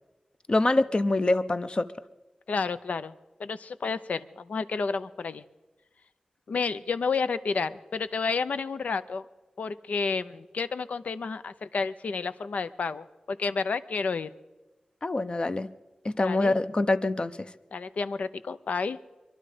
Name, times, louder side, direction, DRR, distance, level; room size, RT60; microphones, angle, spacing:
voice 1, 0.5-1.9 15.0-15.7 16.0-17.5, left 2 dB, 40° left, 12 dB, 0.7 m, -25 dB
voice 2, 2.5-3.1 3.4-5.4 6.5-9.3 9.6-14.3 16.2-16.6 17.7-19.0, left 4 dB, 85° left, 13 dB, 0.5 m, -30 dB
23.0 x 12.0 x 5.0 m, 1.1 s
wide cardioid pair, 60°, 2 cm